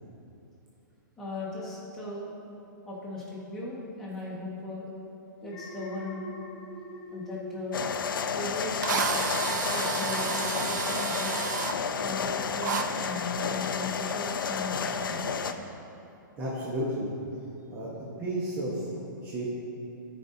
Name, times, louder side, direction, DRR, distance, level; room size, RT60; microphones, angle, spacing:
voice 1, 1.2-2.3 2.8-4.9 5.4-6.4 7.1-7.8 8.3-11.3 12.0-15.4, left 2 dB, 5° left, -8 dB, 1.7 m, -38 dB
Alarm, 5.4-8.7 9.1-9.5, left 2 dB, 35° left, 1.0 m, -42 dB
sound 1, 7.7-15.5, left 6 dB, 90° left, 0.5 m, -31 dB
Drill, 8.2-8.3 8.8-11.8 12.6-12.9, right 6 dB, 60° right, 0.5 m, -31 dB
voice 2, 16.4-17.1 17.7-19.4, right 1 dB, 20° right, -7 dB, 1.1 m, -33 dB
13.0 x 5.3 x 2.8 m, 2.6 s
hypercardioid pair, 155°, 11 cm